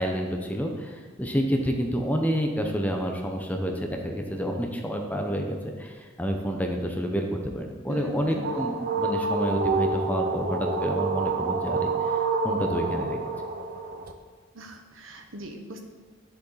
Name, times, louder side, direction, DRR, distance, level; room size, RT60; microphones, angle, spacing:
voice 1, 0.0-12.2 12.4-13.2, equal, 10° left, 2 dB, 0.8 m, -29 dB
voice 2, 7.9-8.9 14.5-15.8, right 1 dB, 85° right, 3 dB, 1.2 m, -41 dB
sound 1, 8.0-14.1, right 3 dB, 45° right, 0.7 m, -28 dB
10.5 x 6.8 x 4.1 m, 1.4 s
head